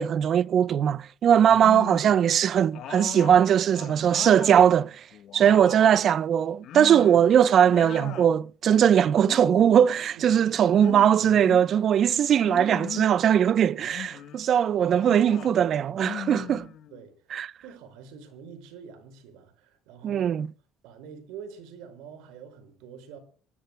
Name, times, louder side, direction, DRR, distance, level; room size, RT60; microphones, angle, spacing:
voice 1, 0.0-5.0 5.3-16.6 17.3-17.5 20.0-20.5, right 9 dB, 50° right, 0.6 m, -20 dB
sound 1, 1.5-2.3 2.7-4.7 5.1-6.1 6.6-7.3 7.6-8.3 9.2-9.9 10.8-11.7 12.4-13.2 13.8-14.4 14.9-15.6 16.0-17.1, left 11 dB, 60° left, 1.3 m, -39 dB
voice 2, 10.1-10.5 16.4-16.6 16.9-17.1 17.6-20.3 20.8-23.2, right 6 dB, 85° right, 5.7 m, -45 dB
27.0 x 17.5 x 2.2 m
cardioid pair, 105°, 0 cm